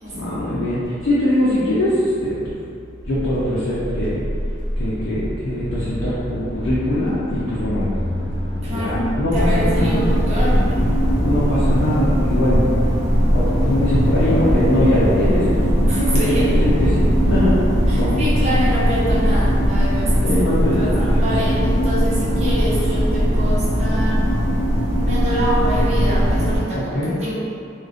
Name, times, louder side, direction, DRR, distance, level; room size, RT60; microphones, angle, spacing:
voice 1, 0.1-2.5 3.0-4.2 4.8-7.9 8.7-9.9 11.2-12.7 13.3-15.7 16.1-17.7 17.9-18.2 20.2-21.2 26.7-27.1, left 1 dB, 80° left, -9 dB, 0.5 m, -22 dB
sound 1, 3.0-19.9, equal, 90° right, 0.6 m, -26 dB
voice 2, 8.6-10.7 15.9-16.6 17.9-20.3 20.8-24.2 25.0-27.3, equal, 35° right, -9 dB, 0.6 m, -25 dB
sound 2, 9.3-26.6, equal, 20° left, 0.9 m, -19 dB
2.4 x 2.1 x 2.4 m, 2.4 s
head